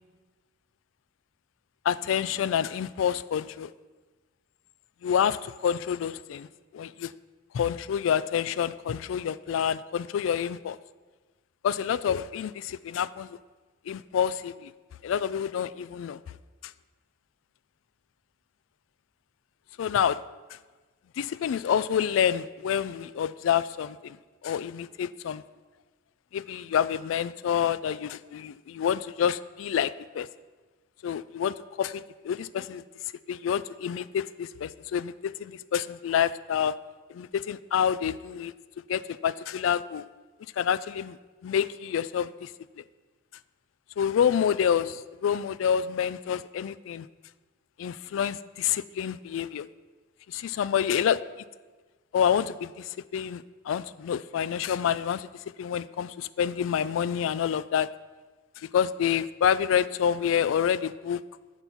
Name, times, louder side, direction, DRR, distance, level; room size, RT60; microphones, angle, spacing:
voice 1, 1.8-3.7 5.0-6.5 6.7-7.1 7.5-10.8 11.6-13.4 13.9-14.7 15.0-16.2 19.8-20.2 21.2-24.2 24.4-25.4 26.3-30.3 31.0-32.8 33.3-36.8 37.1-38.5 38.9-40.1 40.6-41.2 41.4-42.5 44.0-47.1 47.8-49.7 50.3-51.2 52.1-55.3 55.6-57.9 58.6-61.2, left 8 dB, 85° left, 18 dB, 0.3 m, -28 dB
7.9 x 6.1 x 5.6 m, 1.3 s
head